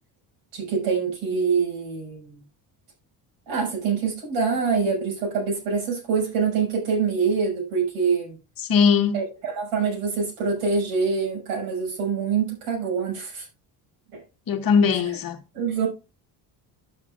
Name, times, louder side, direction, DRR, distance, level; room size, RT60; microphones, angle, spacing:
voice 1, 0.5-2.4 3.5-8.4 9.1-13.4 14.1-14.2 15.5-15.9, right 5 dB, 90° right, 6.3 m, -25 dB
voice 2, 8.6-9.2 14.5-15.4, left 6 dB, 45° left, 1.4 m, -20 dB
11.5 x 8.1 x 2.5 m
cardioid pair, 100°, 49 cm